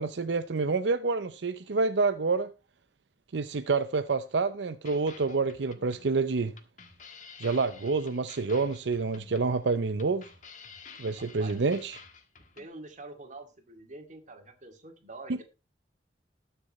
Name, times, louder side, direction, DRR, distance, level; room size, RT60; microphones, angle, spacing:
voice 1, 0.0-2.5 3.3-6.5 7.4-10.2 11.0-12.0, right 4 dB, 85° right, 0.6 m, -28 dB
sound 1, 4.9-12.7, left 5 dB, 45° left, 1.6 m, -51 dB
voice 2, 11.2-11.5 12.6-15.4, right 2 dB, 45° right, 2.4 m, -46 dB
20.0 x 6.9 x 3.1 m
head